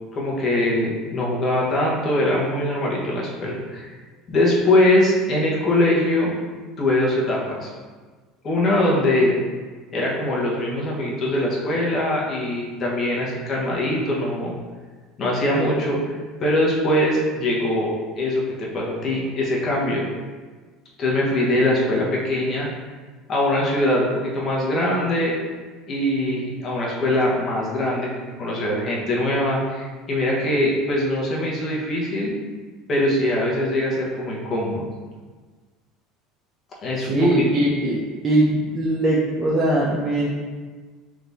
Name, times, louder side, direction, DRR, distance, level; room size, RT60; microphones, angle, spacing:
voice 1, 0.1-3.8 4.3-6.3 6.8-7.7 8.4-9.3 9.9-14.5 15.2-16.1 16.4-20.1 21.0-22.7 23.3-25.3 25.9-28.1 28.4-32.4 32.9-34.9 36.8-37.5, left 1 dB, 40° left, -4 dB, 1.2 m, -22 dB
voice 2, 37.0-38.0 38.2-40.3, right 1 dB, 30° right, -5 dB, 0.7 m, -20 dB
3.6 x 2.9 x 4.0 m, 1.4 s
supercardioid pair, 100°, 0 cm